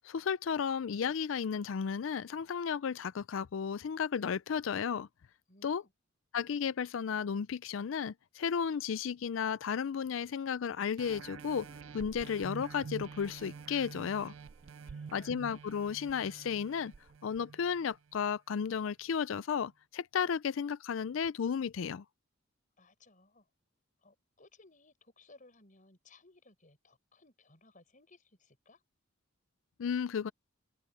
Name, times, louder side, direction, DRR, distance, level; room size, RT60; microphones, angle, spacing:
voice 1, 0.0-5.1 5.6-5.8 6.3-11.7 11.9-14.3 15.1-16.9 17.2-22.0 29.8-30.3, left 7 dB, 75° left, 0.4 m, -33 dB
voice 2, 5.5-5.9 14.8-15.3 22.8-23.5 24.0-28.8, left 2 dB, 40° left, 6.8 m, -62 dB
sound 1, 11.0-17.2, right 1 dB, 40° right, 1.7 m, -60 dB
sound 2, 11.0-18.2 18.7-18.8, right 5 dB, 75° right, 0.4 m, -48 dB
head